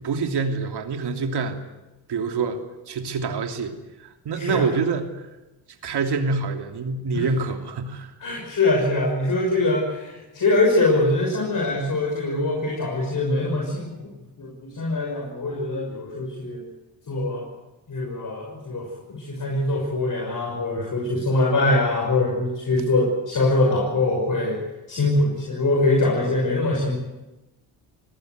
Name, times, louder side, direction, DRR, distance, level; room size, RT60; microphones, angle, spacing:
voice 1, 0.0-1.6 2.1-2.6 2.9-5.2 5.8-8.1, right 4 dB, 55° right, 5 dB, 3.0 m, -26 dB
voice 2, 4.3-4.7 7.1-7.3 8.2-14.1 14.4-16.6 17.1-17.4 17.9-24.6 24.9-27.1, left 2 dB, 45° left, -1 dB, 6.3 m, -23 dB
25.0 x 18.0 x 8.1 m, 1.0 s
supercardioid pair, 70°, 46 cm